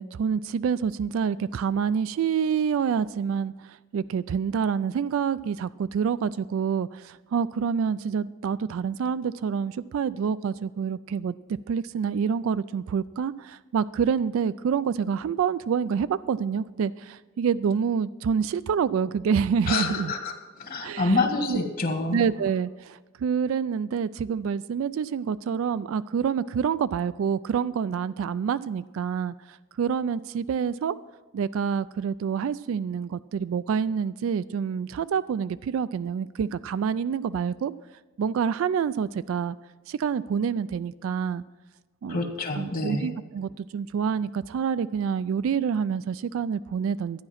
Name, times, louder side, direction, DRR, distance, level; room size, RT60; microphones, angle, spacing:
voice 1, 0.0-11.4 11.7-20.1 20.8-21.2 21.5-21.6 22.1-31.0 31.3-37.7 38.2-39.6 39.9-41.4 42.0-42.3 42.6-47.2, right 7 dB, 70° right, 15 dB, 0.3 m, -27 dB
voice 2, 19.7-22.2 42.1-43.1, left 3 dB, 45° left, 5 dB, 1.5 m, -27 dB
12.5 x 9.7 x 5.7 m, 1.3 s
head